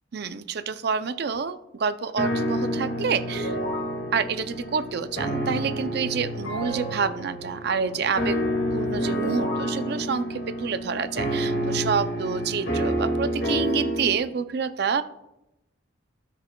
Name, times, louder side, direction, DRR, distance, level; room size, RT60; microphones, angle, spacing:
voice 1, 0.1-3.6 4.1-8.4 8.7-15.0, right 6 dB, 50° right, 11 dB, 0.4 m, -28 dB
sound 1, 2.2-14.2, equal, 60° left, 1.9 m, -28 dB
17.5 x 6.0 x 2.2 m, 0.90 s
head